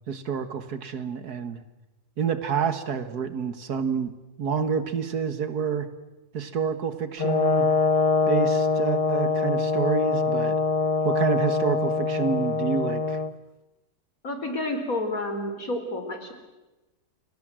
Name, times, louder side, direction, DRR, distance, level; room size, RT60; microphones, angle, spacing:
voice 1, 0.1-1.6 2.2-4.1 4.4-5.9 6.3-7.7 8.3-10.6 11.0-13.2, right 6 dB, 70° right, 11 dB, 2.1 m, -28 dB
Brass instrument, 7.2-13.3, left 4 dB, 25° left, 0.9 m, -24 dB
voice 2, 14.2-16.3, left 1 dB, 60° left, 6 dB, 4.4 m, -30 dB
30.0 x 23.0 x 7.7 m, 1.1 s
omnidirectional pair, 1.7 m